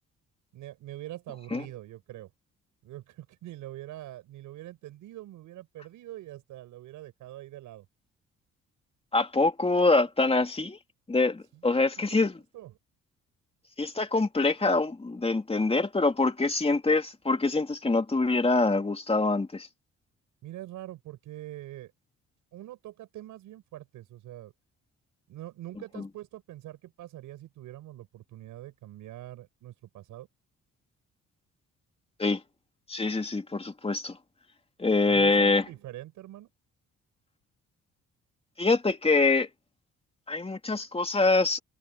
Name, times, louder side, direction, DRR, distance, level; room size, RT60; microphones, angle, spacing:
voice 1, 0.5-2.3 2.8-7.9 11.5-12.7 20.4-21.9 22.5-24.5 25.3-30.3 35.0-36.5, right 14 dB, 85° right, 6.0 m, -44 dB
voice 2, 9.1-10.8 11.1-12.4 13.8-19.7 26.0-26.1 32.2-32.4 32.9-34.2 34.8-35.6 38.6-39.5 40.3-41.6, left 3 dB, 20° left, 2.8 m, -25 dB
open air
cardioid pair, 90°, 30 cm